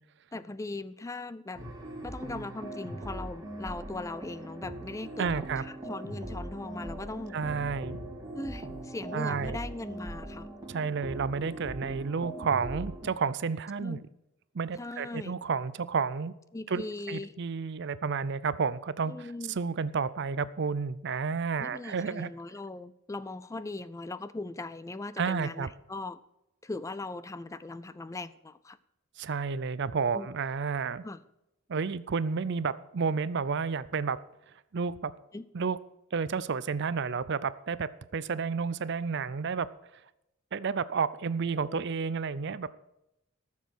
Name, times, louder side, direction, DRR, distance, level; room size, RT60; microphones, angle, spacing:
voice 1, 0.3-1.6 2.0-7.4 8.3-10.5 13.8-14.0 14.8-15.4 16.5-17.3 19.1-19.6 21.6-26.2 26.6-28.8 30.1-30.3 31.0-31.2 35.3-35.5 41.4-41.8, left 2 dB, 15° left, 0.4 m, -39 dB
sound 1, 1.5-13.1, right 1 dB, 20° right, 2.9 m, -40 dB
voice 2, 5.2-5.6 7.3-8.0 9.1-9.6 10.7-14.0 14.5-16.3 16.7-16.8 17.1-22.3 25.2-25.7 29.2-31.0 31.7-34.2 34.7-35.1 35.5-35.8 36.1-39.7 40.5-42.7, right 5 dB, 60° right, 0.5 m, -31 dB
14.0 x 7.3 x 6.2 m
head